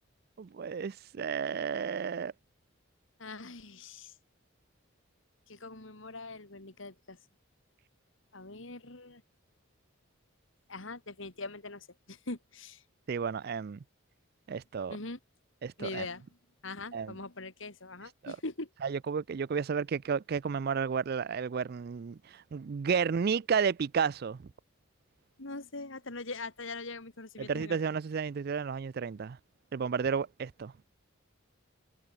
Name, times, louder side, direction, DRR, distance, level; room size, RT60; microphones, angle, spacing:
voice 1, 0.4-2.3 13.1-13.8 14.5-15.0 15.6-16.1 16.9-17.1 18.2-18.4 18.8-24.4 27.4-29.4 29.7-30.7, right 6 dB, 50° right, 0.4 m, -32 dB
voice 2, 3.2-4.1 5.5-7.2 8.3-9.2 10.7-12.8 14.9-15.2 15.8-16.2 16.6-18.7 25.4-27.8, left 3 dB, 65° left, 2.6 m, -42 dB
head